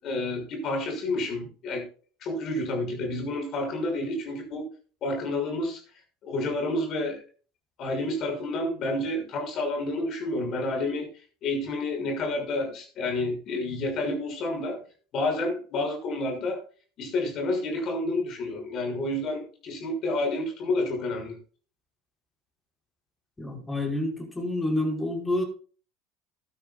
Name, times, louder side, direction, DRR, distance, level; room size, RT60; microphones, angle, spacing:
voice 1, 0.0-1.8 2.2-4.6 5.0-5.8 6.2-7.2 7.8-11.1 11.4-14.8 15.1-16.6 17.0-21.4, left 2 dB, 45° left, 3 dB, 6.4 m, -29 dB
voice 2, 23.4-25.4, left 1 dB, 10° left, 0 dB, 5.3 m, -28 dB
16.5 x 12.5 x 2.5 m, 0.40 s
figure-of-eight pair, 70°, 0 cm